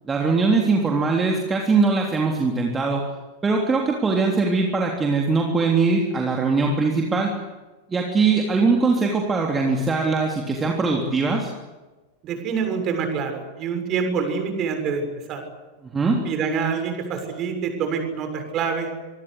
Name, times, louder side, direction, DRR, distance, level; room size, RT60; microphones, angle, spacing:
voice 1, 0.1-3.0 3.4-7.3 7.9-11.5 15.9-16.2, right 4 dB, 15° right, 0 dB, 3.5 m, -21 dB
voice 2, 12.2-15.4 16.2-18.9, right 6 dB, 35° right, 6 dB, 6.9 m, -26 dB
26.0 x 23.5 x 8.3 m, 1.2 s
figure-of-eight pair, 90°, 0 cm